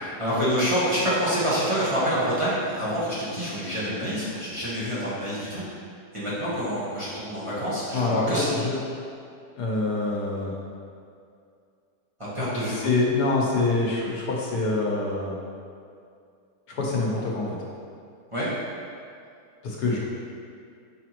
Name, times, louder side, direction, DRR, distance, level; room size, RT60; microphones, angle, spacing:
voice 1, 0.0-5.8 6.1-8.5 12.2-12.9 18.3-18.5, equal, 20° right, -11 dB, 1.4 m, -27 dB
voice 2, 7.9-8.8 9.6-10.5 12.8-15.3 16.7-17.5 19.6-20.0, left 3 dB, 80° left, -3 dB, 1.5 m, -25 dB
6.5 x 4.9 x 3.0 m, 2.4 s
omnidirectional pair, 1.7 m